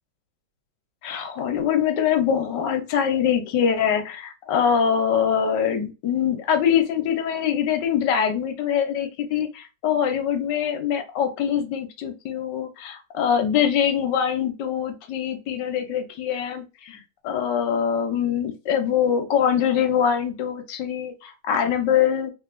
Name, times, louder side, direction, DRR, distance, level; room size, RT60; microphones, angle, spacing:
voice 1, 1.0-22.3, left 8 dB, 65° left, 5 dB, 1.2 m, -23 dB
3.3 x 2.8 x 2.4 m, 0.29 s
omnidirectional pair, 2.2 m